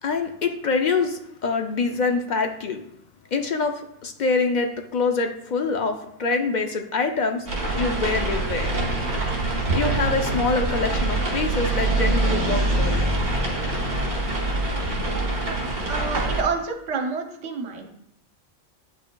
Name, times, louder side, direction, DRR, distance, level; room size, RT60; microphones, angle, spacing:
voice 1, 0.0-2.8 3.3-7.5 7.7-8.7 9.7-13.1, left 4 dB, 55° left, 5 dB, 0.5 m, -25 dB
sound 1, 7.5-16.4, right 2 dB, 65° right, 1.8 m, -24 dB
voice 2, 15.9-17.9, right 5 dB, 80° right, 4 dB, 1.1 m, -28 dB
8.4 x 5.3 x 2.2 m, 0.74 s
omnidirectional pair, 1.2 m